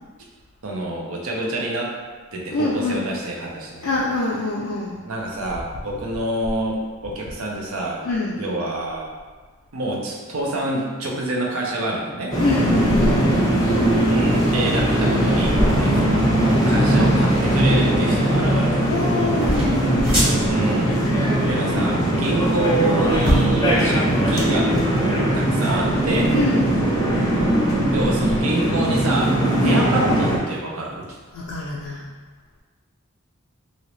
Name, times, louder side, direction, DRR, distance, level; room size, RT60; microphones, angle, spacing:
voice 1, 0.6-1.9 2.3-3.9 5.0-8.0 8.4-9.1 9.7-12.4 14.1-19.0 20.5-20.9 21.4-24.8 25.3-26.4 27.9-31.1, right 1 dB, 75° right, -2 dB, 0.6 m, -27 dB
voice 2, 2.5-3.1 3.8-5.1 8.0-8.4 12.4-13.6 18.9-20.5 26.3-26.8 29.6-29.9 31.3-32.0, left 3 dB, 80° left, -4 dB, 0.4 m, -25 dB
sound 1, 12.3-30.4, right 1 dB, 20° left, 0.5 m, -20 dB
sound 2, 12.7-28.4, equal, 25° right, 1.1 m, -29 dB
2.9 x 2.7 x 3.1 m, 1.4 s
head